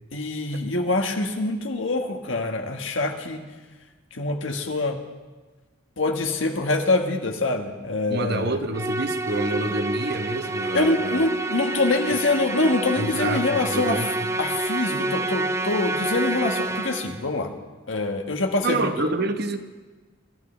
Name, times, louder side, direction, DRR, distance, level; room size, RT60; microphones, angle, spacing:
voice 1, 0.1-3.4 4.1-5.0 6.0-8.6 10.7-17.5 17.9-18.9, left 2 dB, 85° left, 4 dB, 1.6 m, -25 dB
voice 2, 8.1-11.2 13.0-14.1 18.6-19.6, right 2 dB, 55° right, 8 dB, 1.0 m, -27 dB
Musical instrument, 8.7-17.3, right 2 dB, 15° right, 0.5 m, -28 dB
24.5 x 14.0 x 3.4 m, 1.3 s
head